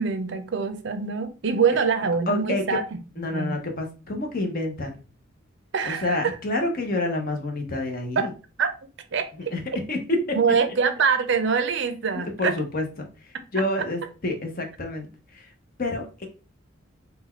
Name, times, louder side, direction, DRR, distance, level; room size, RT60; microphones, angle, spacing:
voice 1, 0.0-2.8 3.3-3.6 5.7-6.4 8.2-8.3 8.6-8.7 9.1-9.3 10.4-12.5, right 5 dB, 55° right, 0.5 m, -24 dB
voice 2, 2.3-2.8 3.2-5.0 5.8-8.3 9.4-9.6 9.9-10.0 10.3-10.4 12.1-15.5 15.8-16.3, left 2 dB, 45° left, 0.8 m, -28 dB
4.0 x 2.3 x 4.3 m
head